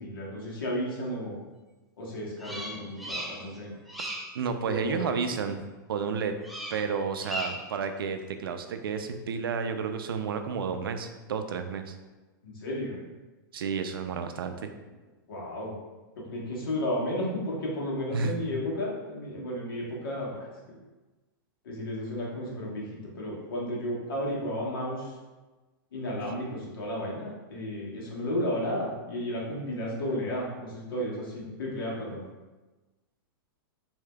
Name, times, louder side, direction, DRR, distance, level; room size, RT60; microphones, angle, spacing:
voice 1, 0.0-1.4 2.0-3.7 4.7-5.1 12.4-13.0 15.3-15.7 16.2-20.5 21.6-25.1 25.9-32.2, equal, 85° left, -4 dB, 1.2 m, -33 dB
Bird vocalization bird call bird song, 2.4-3.6 3.9-4.4 6.4-6.9 7.2-7.7, right 1 dB, ahead, 0.4 m, -37 dB
voice 2, 4.3-6.3 6.7-11.9 13.5-14.7 18.1-18.3, right 6 dB, 90° right, 7 dB, 0.4 m, -31 dB
4.9 x 2.7 x 2.2 m, 1.2 s
hypercardioid pair, 135°, 12 cm